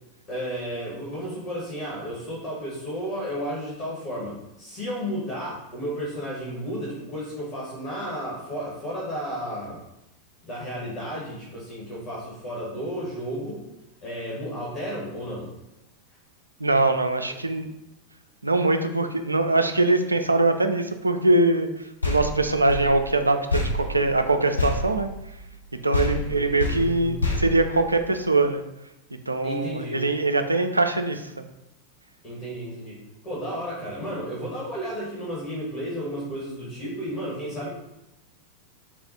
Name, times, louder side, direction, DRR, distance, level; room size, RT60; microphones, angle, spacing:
voice 1, 0.3-9.8 10.4-13.6 14.0-15.5 26.2-27.4 29.4-30.0 32.2-37.7, equal, 40° left, -6 dB, 1.4 m, -33 dB
voice 2, 16.6-17.7 18.4-21.7 22.0-25.1 25.8-28.6 29.3-31.4, right 2 dB, 80° right, 7 dB, 0.3 m, -22 dB
sound 1, 22.0-25.6 25.9-28.4, left 2 dB, 80° left, 0.7 m, -29 dB
4.1 x 2.4 x 4.1 m, 0.91 s
figure-of-eight pair, 90°, 0 cm